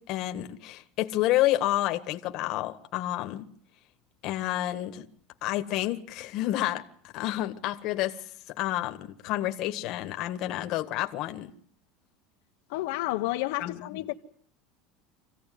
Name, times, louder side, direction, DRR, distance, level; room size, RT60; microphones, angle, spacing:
voice 1, 0.0-3.5 4.2-5.0 5.4-6.8 7.1-8.2 8.6-11.5 13.6-14.0, left 15 dB, 45° left, 1.7 m, -29 dB
voice 2, 12.7-14.1, left 18 dB, 70° left, 1.2 m, -30 dB
26.0 x 16.0 x 9.4 m
cardioid pair, 165°, 0 cm